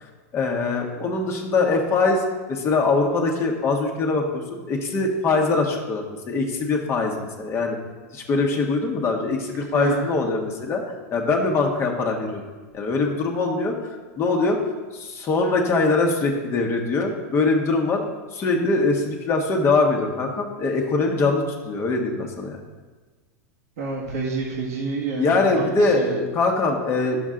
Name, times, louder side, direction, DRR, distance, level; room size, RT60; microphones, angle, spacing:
voice 1, 0.3-7.8 8.1-10.8 11.1-12.4 12.7-13.7 14.2-14.6 14.9-18.0 18.3-22.6 25.2-27.2, left 3 dB, 30° left, 1 dB, 1.3 m, -22 dB
voice 2, 9.7-10.1 23.8-25.7 25.9-26.1, right 4 dB, 70° right, -4 dB, 1.7 m, -28 dB
10.5 x 7.1 x 3.8 m, 1.3 s
hypercardioid pair, 120°, 9 cm